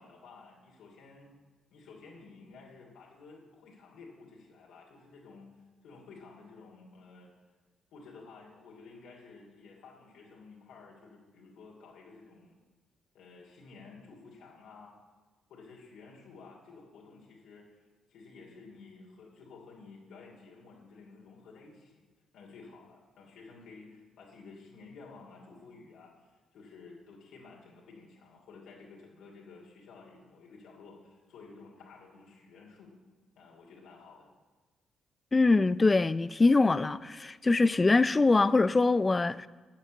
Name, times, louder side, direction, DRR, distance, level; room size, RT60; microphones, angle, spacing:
voice 1, 0.0-1.3 1.7-7.3 7.9-12.6 13.1-15.0 15.5-22.0 22.3-32.9 33.4-34.3, left 4 dB, 80° left, 2.7 m, -52 dB
voice 2, 35.3-39.5, left 3 dB, 25° left, 0.4 m, -23 dB
11.5 x 6.3 x 8.6 m
cardioid pair, 90°, 0 cm